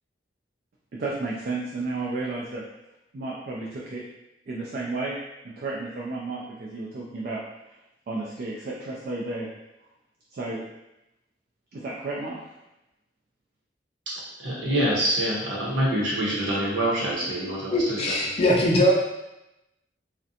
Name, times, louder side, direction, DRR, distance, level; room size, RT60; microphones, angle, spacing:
voice 1, 0.9-2.6 3.1-4.0 4.5-5.2 5.4-7.8 8.1-9.5 10.3-10.6 11.7-12.6, right 3 dB, 50° right, -4 dB, 0.3 m, -32 dB
voice 2, 14.4-18.3, right 1 dB, 85° right, -6 dB, 0.8 m, -26 dB
voice 3, 17.7-18.9, equal, 35° left, -3 dB, 0.4 m, -21 dB
2.4 x 2.1 x 2.7 m, 0.93 s
head